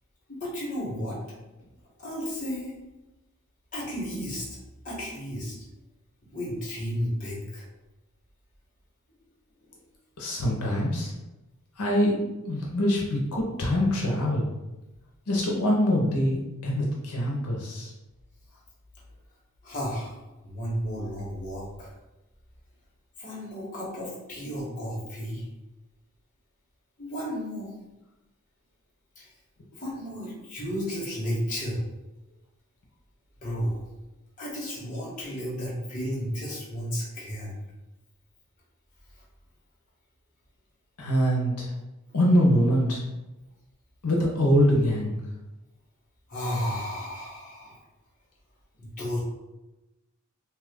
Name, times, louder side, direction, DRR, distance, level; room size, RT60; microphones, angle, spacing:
voice 1, 0.3-1.2 2.0-2.7 3.7-4.5 4.8-5.6 6.3-7.6 19.6-21.9 23.2-25.5 27.0-27.7 29.2-29.3 29.8-31.8 33.4-33.8 34.4-37.6 46.3-47.8 48.8-49.2, equal, 35° left, -6 dB, 1.1 m, -33 dB
voice 2, 10.2-11.1 11.8-12.2 12.5-14.4 15.3-17.9 41.0-41.7 42.1-43.0 44.0-45.1, equal, 90° left, -2 dB, 0.7 m, -24 dB
2.8 x 2.4 x 3.5 m, 1.0 s
head